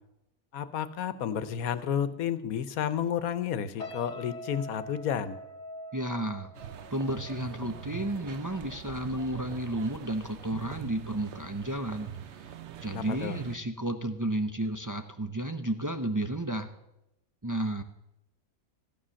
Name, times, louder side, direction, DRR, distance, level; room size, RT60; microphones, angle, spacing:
voice 1, 0.5-5.4 12.9-13.4, left 8 dB, 85° left, 14 dB, 1.3 m, -31 dB
sound 1, 3.8-9.1 9.4-9.7, left 1 dB, 55° left, 1.6 m, -45 dB
voice 2, 5.9-6.5 6.9-12.1 12.4-12.5 12.8-16.7 17.4-17.8, right 1 dB, 30° right, 6 dB, 0.3 m, -32 dB
sound 2, 6.5-13.6, right 9 dB, 60° right, 1.0 m, -43 dB
14.5 x 10.0 x 6.3 m, 0.89 s
omnidirectional pair, 1.5 m